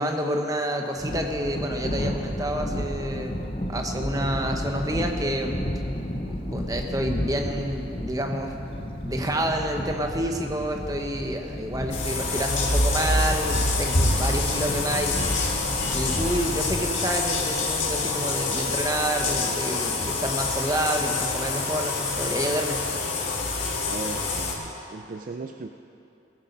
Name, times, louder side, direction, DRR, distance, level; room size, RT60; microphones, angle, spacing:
voice 1, 0.0-3.4 3.7-5.5 6.2-8.6 9.0-15.6 15.9-22.8, right 1 dB, 20° right, 3 dB, 1.0 m, -28 dB
Thunder, 1.0-19.4, equal, 30° left, 0.8 m, -33 dB
sound 1, 11.9-24.5, left 3 dB, 85° left, 1.8 m, -26 dB
voice 2, 23.9-25.7, right 3 dB, 45° right, 6 dB, 0.4 m, -37 dB
18.0 x 8.3 x 5.3 m, 2.8 s
head